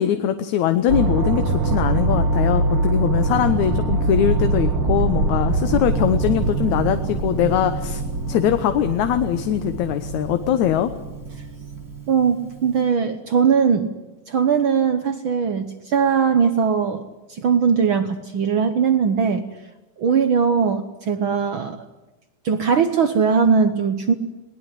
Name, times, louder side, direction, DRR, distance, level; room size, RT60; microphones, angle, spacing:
voice 1, 0.0-8.0 8.3-10.9, left 10 dB, 70° left, 9 dB, 2.2 m, -21 dB
sound 1, 0.9-12.0, right 3 dB, 45° right, 2.4 m, -23 dB
Gong, 5.5-12.8, right 5 dB, 5° left, 2.8 m, -38 dB
voice 2, 12.1-13.9 14.3-17.0 17.3-19.5 20.0-21.8 22.4-24.1, right 6 dB, 70° right, 9 dB, 1.2 m, -20 dB
20.5 x 20.0 x 9.9 m, 1.0 s
omnidirectional pair, 3.7 m